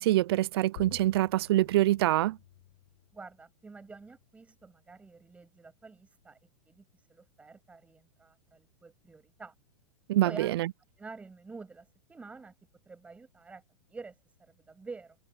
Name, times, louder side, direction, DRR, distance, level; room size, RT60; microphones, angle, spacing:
voice 1, 0.0-2.4 10.1-10.7, right 15 dB, 50° right, 0.4 m, -25 dB
sound 1, 0.8-5.8, left 16 dB, 55° left, 3.3 m, -54 dB
voice 2, 3.1-6.4 6.6-9.5 10.2-10.5 11.0-12.5 12.9-13.6 13.9-15.2, right 4 dB, 10° right, 7.8 m, -48 dB
supercardioid pair, 165°, 17 cm